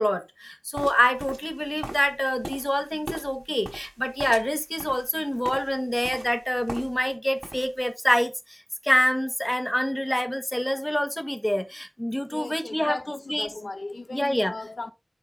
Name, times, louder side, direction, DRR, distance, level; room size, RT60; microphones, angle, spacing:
voice 1, 0.0-8.6 8.8-13.5 14.1-14.5, equal, 10° left, 1.6 m, -26 dB
sound 1, 0.7-7.1 7.4-7.9, right 1 dB, 50° right, 4.9 m, -40 dB
voice 2, 12.3-14.9, left 3 dB, 80° left, 1.0 m, -37 dB
12.0 x 4.3 x 3.9 m
wide cardioid pair, 50°, 0 cm